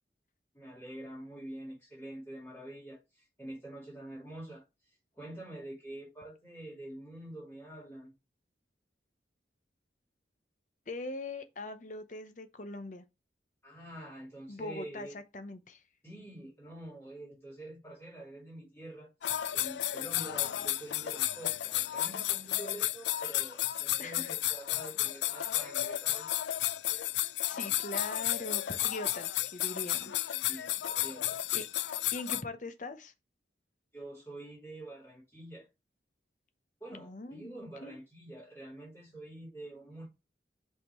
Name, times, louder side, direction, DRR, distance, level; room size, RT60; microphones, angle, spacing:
voice 1, 0.5-8.1 13.6-15.2 16.0-26.3 30.5-31.5 33.9-35.7 36.8-40.1, right 1 dB, 15° left, 3.0 m, -46 dB
voice 2, 10.9-13.0 14.5-15.8 24.0-24.5 27.4-30.5 31.5-31.6 32.1-33.1 36.9-38.0, left 2 dB, 45° left, 0.8 m, -42 dB
sound 1, 19.2-32.4, left 13 dB, 75° left, 0.4 m, -33 dB
5.6 x 3.7 x 4.4 m
head